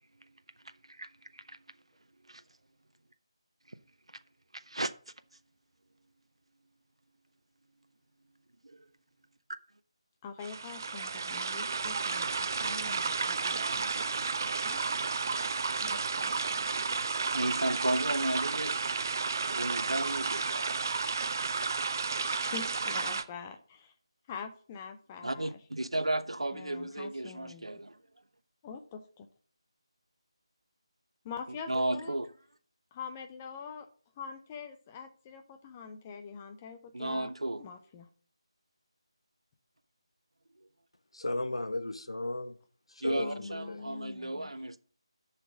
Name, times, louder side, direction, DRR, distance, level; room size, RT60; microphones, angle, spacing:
voice 1, 4.5-4.9 8.6-8.9 13.1-13.3 16.6-16.7 17.0-18.8 19.5-20.8 25.2-28.0 31.7-32.3 36.9-37.6 43.0-44.8, right 1 dB, 70° right, 0.7 m, -34 dB
voice 2, 10.2-14.8 15.8-16.7 22.2-23.9 24.3-25.5 26.5-27.8 28.6-29.3 31.2-32.1 32.9-33.9 34.2-37.3 37.6-38.1 43.2-44.5, left 6 dB, 15° left, 0.6 m, -45 dB
sound 1, 10.4-23.2, right 4 dB, 35° right, 0.6 m, -32 dB
voice 3, 41.1-42.5 42.9-43.8, left 2 dB, 70° left, 0.9 m, -35 dB
7.0 x 5.8 x 7.4 m
figure-of-eight pair, 160°, 3 cm